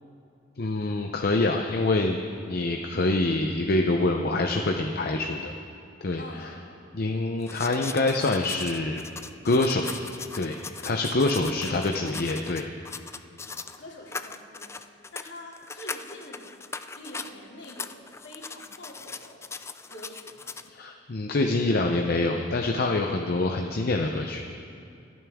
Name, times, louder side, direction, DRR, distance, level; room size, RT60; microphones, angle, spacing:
voice 1, 0.6-2.2 2.5-5.5 6.0-6.2 6.9-9.0 9.4-10.0 10.3-10.6 10.8-12.6 20.7-24.4, left 2 dB, 55° left, 3 dB, 0.7 m, -25 dB
voice 2, 6.1-6.6 11.3-11.7 13.4-16.5 16.9-19.5 19.9-20.5, left 1 dB, 75° left, -3 dB, 2.8 m, -45 dB
sound 1, 7.4-13.8 14.1-17.3 17.6-20.7, left 4 dB, 15° left, 0.4 m, -39 dB
27.5 x 9.3 x 3.6 m, 2.5 s
head